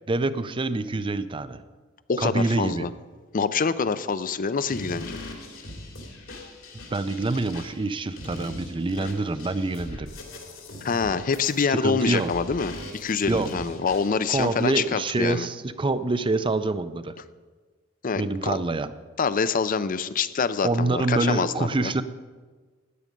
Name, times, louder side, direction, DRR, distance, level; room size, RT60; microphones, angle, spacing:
voice 1, 0.0-1.6 2.2-2.9 6.9-10.1 11.7-12.3 13.3-13.5 14.3-17.1 18.2-18.9 20.6-22.0, right 2 dB, 25° right, 13 dB, 0.5 m, -26 dB
voice 2, 2.1-2.9 3.3-5.2 10.8-15.5 18.0-18.6 19.2-21.9, left 5 dB, 45° left, 14 dB, 0.5 m, -26 dB
sound 1, 4.7-14.8, left 1 dB, 75° left, 2.6 m, -41 dB
13.5 x 9.6 x 5.3 m, 1.4 s
head